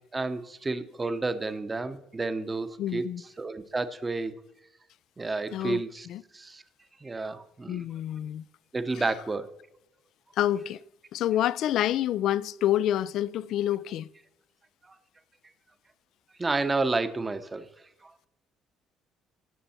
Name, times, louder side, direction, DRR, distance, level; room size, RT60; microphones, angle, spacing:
voice 1, 0.1-4.3 5.2-6.1 6.3-6.6 7.0-7.8 8.7-9.5 16.4-17.7, right 3 dB, 20° right, 0.9 m, -30 dB
voice 2, 2.8-3.2 5.5-5.8 6.1-6.2 7.7-8.4 9.0-9.1 10.4-10.8 11.1-14.1, left 12 dB, 70° left, 0.3 m, -27 dB
17.0 x 6.7 x 4.3 m
cardioid pair, 115°, 0 cm